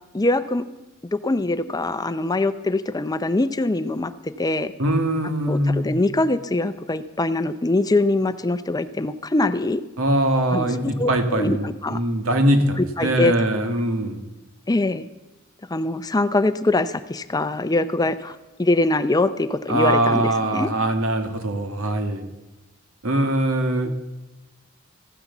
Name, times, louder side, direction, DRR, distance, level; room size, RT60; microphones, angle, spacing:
voice 1, 0.1-0.7 1.1-4.7 5.5-9.8 10.5-12.0 12.8-13.3 14.7-15.1 15.7-20.7 23.8-23.9, left 2 dB, 20° left, 12 dB, 0.6 m, -23 dB
voice 2, 4.8-5.9 10.0-14.2 19.7-22.3 23.0-23.9, right 1 dB, 85° right, 6 dB, 2.0 m, -22 dB
15.0 x 10.5 x 7.1 m, 1.0 s
head